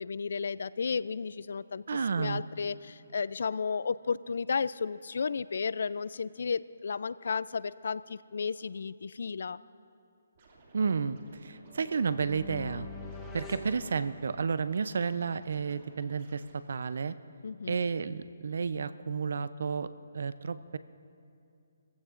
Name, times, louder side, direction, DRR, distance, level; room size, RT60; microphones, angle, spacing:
voice 1, 0.0-1.8 2.2-9.6 17.4-17.8, left 5 dB, 65° left, 18 dB, 0.3 m, -33 dB
voice 2, 1.9-2.4 10.7-12.9 13.3-17.2 17.7-20.8, right 5 dB, 65° right, 14 dB, 0.5 m, -32 dB
Scratching (performance technique), 10.3-16.5, right 2 dB, 40° right, 2.4 m, -59 dB
sound 1, 11.7-14.7, left 3 dB, 10° left, 1.2 m, -45 dB
24.0 x 15.0 x 2.5 m, 2.5 s
hypercardioid pair, 160°, 0 cm